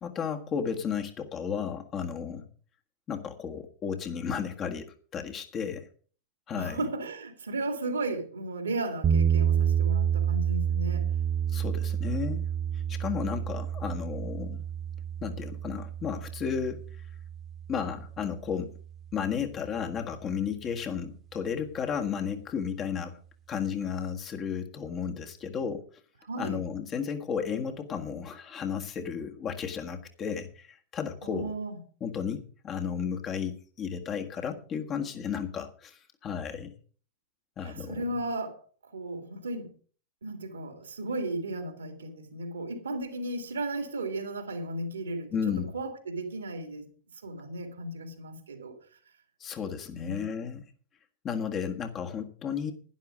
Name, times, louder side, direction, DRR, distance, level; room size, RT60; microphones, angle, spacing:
voice 1, 0.0-2.5 3.1-5.9 6.5-6.8 11.5-12.5 12.9-14.6 15.2-16.9 17.7-18.8 19.1-23.2 23.5-25.8 26.4-31.5 32.0-36.7 37.6-38.2 45.3-45.7 49.4-50.6 51.2-52.7, left 7 dB, 30° left, 1.6 m, -33 dB
voice 2, 6.5-11.2 26.2-26.6 31.2-31.8 37.6-39.7 40.2-46.9 47.2-48.8 49.9-50.3, right 2 dB, 70° right, 2.2 m, -35 dB
sound 1, 9.0-19.1, right 8 dB, 30° right, 1.5 m, -29 dB
11.5 x 10.5 x 5.1 m
figure-of-eight pair, 90°, 0 cm